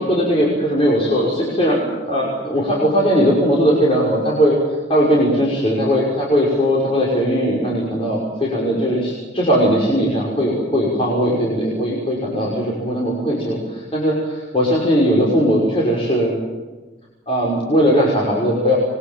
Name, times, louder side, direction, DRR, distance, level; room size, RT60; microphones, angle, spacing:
voice 1, 0.0-4.6 4.9-16.4 17.3-18.8, equal, 30° left, -4 dB, 6.0 m, -18 dB
27.0 x 24.0 x 7.7 m, 1.3 s
head